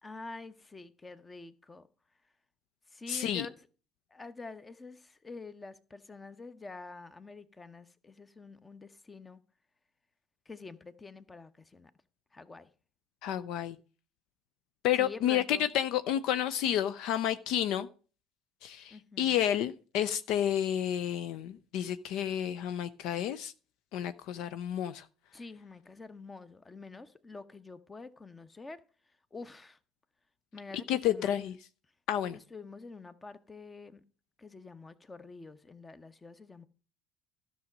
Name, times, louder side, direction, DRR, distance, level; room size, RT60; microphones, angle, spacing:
voice 1, 0.0-1.9 2.9-3.7 4.1-9.4 10.5-11.9 12.3-12.7 15.0-15.7 18.9-19.4 25.3-28.8 29.3-29.8 30.5-31.6 32.3-34.0 34.4-36.7, left 3 dB, 20° left, 1.0 m, -47 dB
voice 2, 3.1-3.5 13.2-13.8 14.8-17.9 18.6-23.5 23.9-25.1 30.9-31.5 32.1-32.4, left 10 dB, 65° left, 0.5 m, -30 dB
13.0 x 6.2 x 5.2 m
hypercardioid pair, 65°, 0 cm